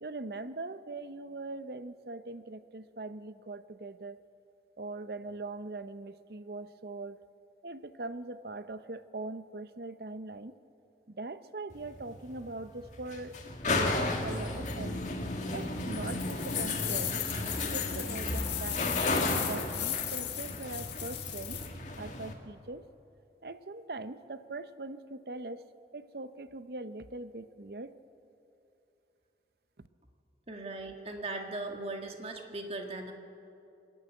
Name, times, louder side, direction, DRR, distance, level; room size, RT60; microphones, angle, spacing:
voice 1, 0.0-4.2 4.8-7.2 7.6-10.5 11.1-13.4 13.7-13.9 14.2-15.0 15.5-17.3 17.7-18.8 19.4-21.6 22.0-22.8 23.4-25.6 25.9-27.9 29.8-29.9, right 2 dB, 60° right, 12 dB, 0.7 m, -41 dB
sound 1, 11.7-22.3, left 2 dB, 40° left, 1.9 m, -34 dB
sound 2, 16.1-21.7, left 12 dB, 85° left, 1.9 m, -37 dB
voice 2, 30.5-33.1, right 2 dB, 35° right, 3 dB, 1.8 m, -38 dB
24.5 x 11.5 x 9.2 m, 2.8 s
head